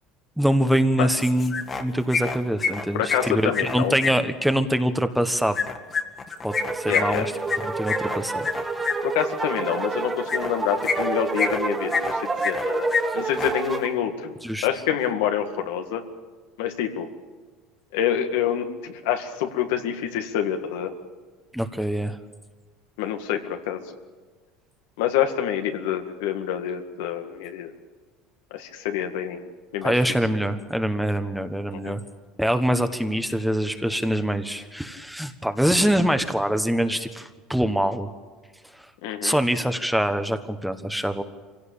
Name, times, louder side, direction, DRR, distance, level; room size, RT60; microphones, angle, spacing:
voice 1, 0.4-5.6 6.4-7.3 7.6-8.5 14.4-14.7 21.5-22.2 29.8-32.0 32.4-38.1 39.2-41.2, equal, ahead, 9 dB, 1.3 m, -24 dB
sound 1, 1.2-1.8 2.1-4.1 5.5-8.9 10.3-10.5 10.8-11.6 11.9-12.6 12.9-13.0 13.3-13.5, left 5 dB, 35° left, 2.0 m, -27 dB
voice 2, 2.9-4.0 6.9-7.3 9.0-12.9 13.1-14.3 14.6-16.0 16.6-17.1 17.9-20.9 23.0-23.8 25.0-27.7 28.5-29.4 29.7-29.9 31.7-31.9 39.0-39.4, left 9 dB, 80° left, 5 dB, 2.0 m, -27 dB
sound 2, 6.5-13.9, right 3 dB, 15° right, 1.9 m, -28 dB
24.5 x 17.0 x 8.6 m, 1.4 s
supercardioid pair, 105°, 0 cm